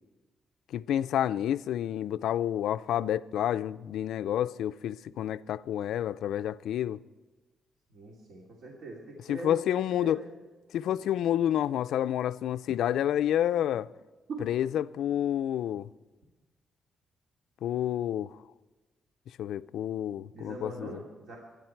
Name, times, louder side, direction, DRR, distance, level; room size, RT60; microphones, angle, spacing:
voice 1, 0.7-7.0 9.3-10.2 10.7-13.9 14.4-15.9 17.6-18.4 19.4-21.0, left 11 dB, 80° left, 0.4 m, -29 dB
voice 2, 7.9-9.6 10.0-10.3 13.7-13.8 14.3-14.4 20.3-21.4, right 2 dB, 60° right, 2.7 m, -41 dB
25.5 x 10.5 x 4.6 m
cardioid pair, 160°, 0 cm